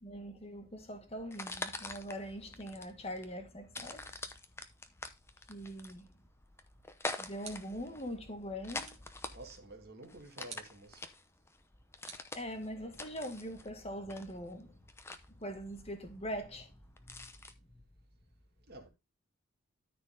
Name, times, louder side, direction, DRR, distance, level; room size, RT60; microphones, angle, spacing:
voice 1, 0.0-4.1 5.5-6.1 7.2-8.9 12.3-14.7 15.4-16.7 17.0-17.3, equal, 25° left, 1.8 m, -42 dB
sound 1, 1.2-17.5, left 2 dB, 10° left, 0.7 m, -46 dB
sound 2, 7.4-7.9 8.8-9.2 10.5-10.8 12.1-12.9, right 5 dB, 30° right, 2.3 m, -52 dB
voice 2, 9.3-11.0 18.7-18.9, right 2 dB, 45° right, 2.4 m, -50 dB
13.0 x 4.4 x 3.8 m
head